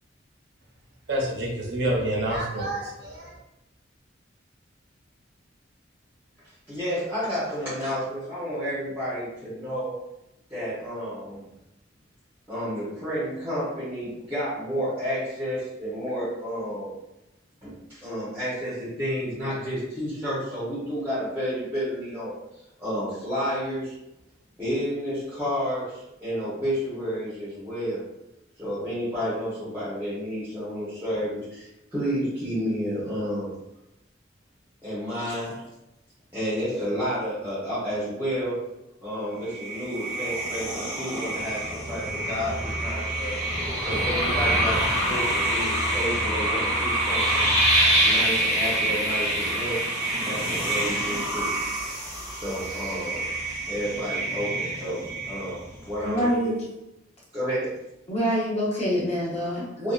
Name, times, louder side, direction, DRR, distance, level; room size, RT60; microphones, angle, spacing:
voice 1, 1.1-3.3, right 1 dB, 60° right, -2 dB, 0.7 m, -27 dB
voice 2, 6.7-9.9 10.5-11.4 12.5-16.9 17.6-23.9 24.6-28.0 28.6-33.5 34.8-35.6 36.3-38.6 39.0-43.4 43.8-47.5 48.0-49.8 50.2-51.5 52.3-53.3 53.7-56.5 57.3-57.7 59.8-59.9, equal, 10° right, -12 dB, 0.9 m, -31 dB
sound 1, 39.5-55.8, right 1 dB, 15° left, 1.4 m, -26 dB
voice 3, 56.0-56.6 58.1-59.7, equal, 35° left, -5 dB, 0.7 m, -25 dB
2.6 x 2.3 x 2.3 m, 0.91 s
head